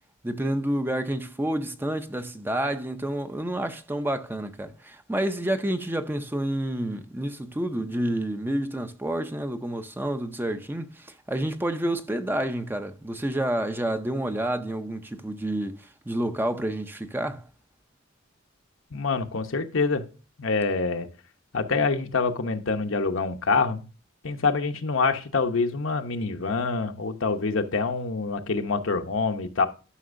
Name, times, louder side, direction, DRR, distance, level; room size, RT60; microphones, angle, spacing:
voice 1, 0.2-15.8 16.1-17.5, right 1 dB, 10° right, 0.5 m, -29 dB
voice 2, 18.9-20.1 20.4-21.1 21.5-23.8 24.2-29.7, left 4 dB, 75° left, 0.9 m, -26 dB
11.5 x 5.9 x 2.6 m
head